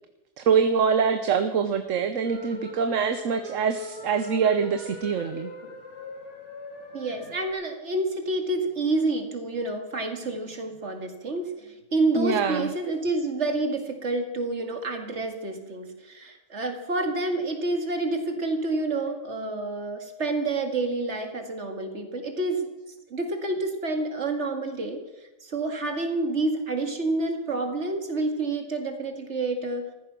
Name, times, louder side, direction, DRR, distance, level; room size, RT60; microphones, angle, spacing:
voice 1, 0.4-5.5 12.1-12.7, right 6 dB, 80° right, 9 dB, 1.2 m, -24 dB
sound 1, 2.2-7.5, left 2 dB, 65° left, 2.6 m, -41 dB
voice 2, 6.9-22.7 23.1-25.0 25.4-29.9, right 2 dB, 65° right, 4 dB, 2.3 m, -28 dB
15.0 x 14.0 x 6.1 m, 1.1 s
omnidirectional pair, 1.3 m